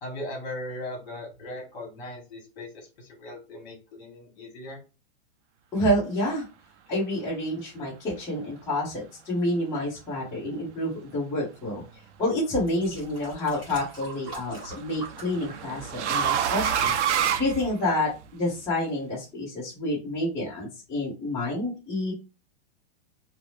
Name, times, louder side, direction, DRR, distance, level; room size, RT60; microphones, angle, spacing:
voice 1, 0.0-4.8, left 1 dB, 40° left, 0 dB, 1.3 m, -38 dB
voice 2, 5.7-6.4 6.9-11.8 12.2-16.9 17.4-22.1, left 1 dB, 10° left, -10 dB, 0.8 m, -28 dB
sound 1, 12.0-12.1 12.6-16.1 16.4-16.8 17.5-17.6, right 3 dB, 15° right, 1.0 m, -44 dB
sound 2, 12.3-12.8 14.3-18.2, right 8 dB, 85° right, 0.5 m, -27 dB
2.7 x 2.0 x 3.0 m, 0.30 s
supercardioid pair, 170°, 34 cm